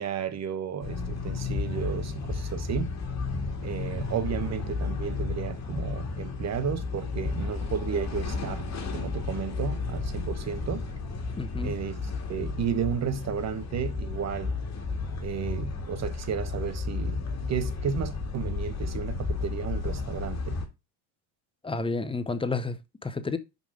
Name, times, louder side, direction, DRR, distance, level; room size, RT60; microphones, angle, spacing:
voice 1, 0.0-2.9 3.6-8.7 8.9-10.8 11.6-12.0 12.3-14.5 15.2-20.6, right 7 dB, 35° right, 1.1 m, -33 dB
sound 1, 0.8-20.7, left 4 dB, 35° left, 2.1 m, -33 dB
voice 2, 11.4-11.7 21.6-23.4, left 3 dB, 10° left, 0.7 m, -31 dB
5.4 x 5.3 x 4.9 m
supercardioid pair, 105°, 48 cm